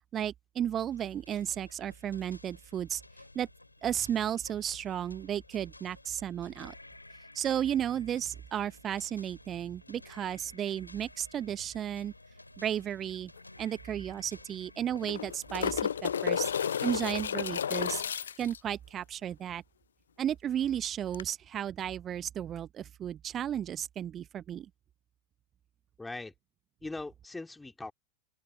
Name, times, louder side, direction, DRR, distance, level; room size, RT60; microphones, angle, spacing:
voice 1, 0.1-3.0 3.3-3.5 3.8-6.7 7.3-12.1 12.6-13.3 13.6-16.5 16.8-18.0 18.4-19.6 20.2-24.7, right 10 dB, 25° right, 0.7 m, -34 dB
sound 1, 0.9-17.3, left 2 dB, 85° left, 2.9 m, -54 dB
sound 2, 13.4-13.5 13.7-13.8 14.9-18.6 21.1-21.2, left 8 dB, 65° left, 0.4 m, -32 dB
voice 2, 26.0-26.3 26.8-27.9, left 2 dB, 10° left, 2.8 m, -40 dB
open air
figure-of-eight pair, 90°, 0 cm